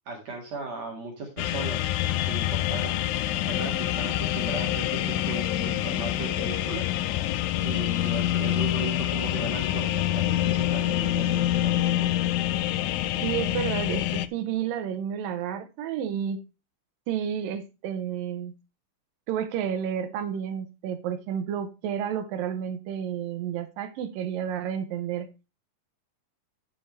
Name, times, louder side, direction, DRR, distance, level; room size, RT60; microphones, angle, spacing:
voice 1, 0.1-6.9 7.6-12.2, right 3 dB, 50° right, 2.9 m, -37 dB
sound 1, 1.4-14.3, left 13 dB, 80° left, 2.2 m, -26 dB
voice 2, 13.2-16.4 17.1-18.5 19.3-25.3, right 9 dB, 75° right, 2.4 m, -31 dB
10.0 x 7.6 x 3.2 m
omnidirectional pair, 4.2 m